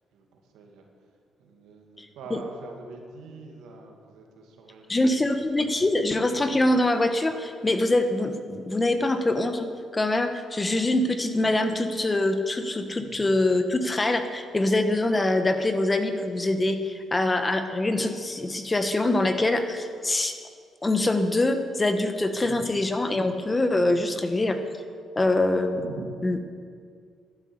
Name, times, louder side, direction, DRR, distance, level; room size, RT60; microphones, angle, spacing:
voice 1, 0.1-0.9 1.4-5.1 10.8-10.9 12.9-13.3 22.3-22.8 23.7-24.0 25.7-26.1, right 4 dB, 90° right, 1 dB, 2.3 m, -44 dB
voice 2, 4.9-9.7 9.9-20.3 20.8-24.6 25.2-25.8 26.2-26.4, left 2 dB, 20° left, 8 dB, 1.2 m, -24 dB
12.0 x 9.5 x 8.0 m, 2.1 s
cardioid pair, 90°, 0 cm